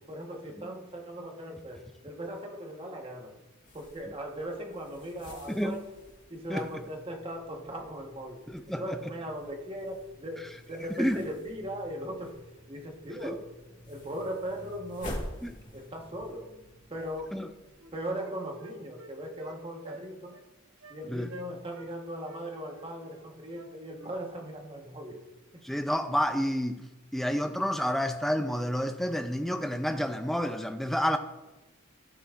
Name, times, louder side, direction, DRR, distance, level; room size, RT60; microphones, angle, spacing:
voice 1, 0.0-3.4 3.7-5.8 6.3-8.4 8.7-12.4 12.7-13.5 13.9-15.3 15.7-16.6 16.9-17.4 17.9-20.4 20.9-25.2 25.5-25.6, equal, 25° right, 1.3 m, -39 dB
sound 1, 3.6-18.1, left 1 dB, 40° left, 2.0 m, -48 dB
voice 2, 8.5-8.8 11.0-11.2 13.2-13.3 17.3-17.5 21.1-21.3 25.6-26.8 27.1-31.2, equal, ahead, 0.5 m, -29 dB
Wind instrument woodwind instrument, 17.3-17.5 17.8-19.6 19.8-20.1 20.3-20.5 20.8-21.0 21.3-21.9 22.3-24.1, right 2 dB, 70° right, 1.0 m, -47 dB
17.0 x 7.1 x 2.5 m
head